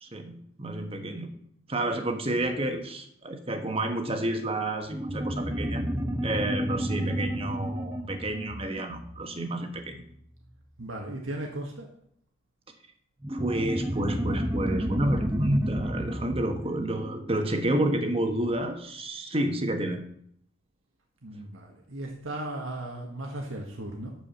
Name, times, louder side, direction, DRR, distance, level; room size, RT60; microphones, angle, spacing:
voice 1, 0.0-1.3 1.7-5.9 6.2-10.0 13.3-20.0, right 1 dB, 30° right, 5 dB, 1.3 m, -30 dB
sound 1, 4.9-9.9 13.2-18.1, equal, 15° right, 0.7 m, -31 dB
voice 2, 10.8-11.9 21.2-24.1, right 1 dB, 85° right, 1 dB, 1.6 m, -36 dB
12.0 x 4.9 x 7.1 m, 0.67 s
head